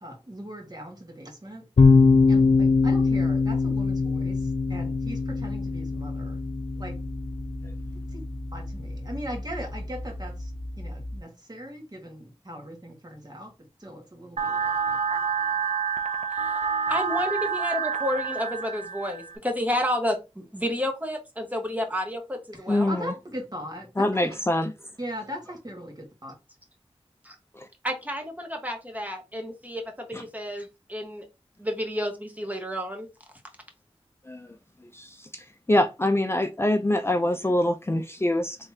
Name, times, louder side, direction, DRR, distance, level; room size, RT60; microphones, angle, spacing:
voice 1, 0.0-1.6 2.3-6.4 6.8-6.9 8.1-8.2 8.5-13.5 13.8-14.7 22.5-24.3 25.0-26.3, equal, 35° right, 1.6 m, -39 dB
sound 1, 1.8-11.2, left 4 dB, 75° left, 0.5 m, -24 dB
sound 2, 14.4-19.4, right 6 dB, 85° right, 0.5 m, -28 dB
voice 2, 16.9-22.9 27.2-27.3 27.8-31.3 31.6-33.1, equal, 15° right, 1.3 m, -30 dB
voice 3, 22.7-23.1 24.0-24.7 27.6-27.7 34.3-34.5 34.9-35.4 35.7-38.6, left 1 dB, 20° left, 0.4 m, -24 dB
3.7 x 3.2 x 2.8 m
wide cardioid pair, 45°, 11 cm